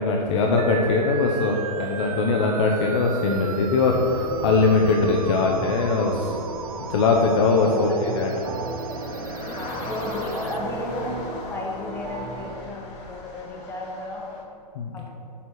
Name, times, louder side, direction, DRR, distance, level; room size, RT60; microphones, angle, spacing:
voice 1, 0.0-6.4 6.9-8.3 14.8-15.0, left 3 dB, 45° left, 1 dB, 0.7 m, -21 dB
sound 1, 0.6-10.6, right 7 dB, 55° right, 0.5 m, -37 dB
sound 2, 1.1-14.4, left 2 dB, 25° left, 1.2 m, -41 dB
voice 2, 2.2-2.7 7.7-8.1 9.6-14.4 14.9-15.1, left 2 dB, 10° left, -1 dB, 1.0 m, -34 dB
sound 3, 3.9-12.5, right 2 dB, 30° right, 1.8 m, -36 dB
7.1 x 4.4 x 6.2 m, 2.9 s
figure-of-eight pair, 110°, 21 cm